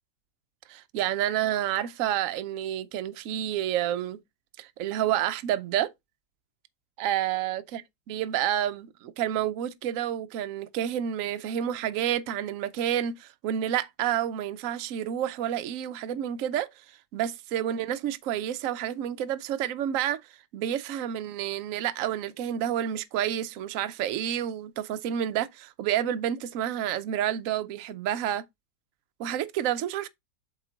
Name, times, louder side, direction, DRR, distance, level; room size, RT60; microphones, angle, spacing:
voice 1, 0.7-4.2 4.6-5.9 7.0-16.7 17.1-20.2 20.5-28.4 29.2-30.1, right 11 dB, 65° right, 0.9 m, -29 dB
8.1 x 3.7 x 3.8 m
omnidirectional pair, 1.8 m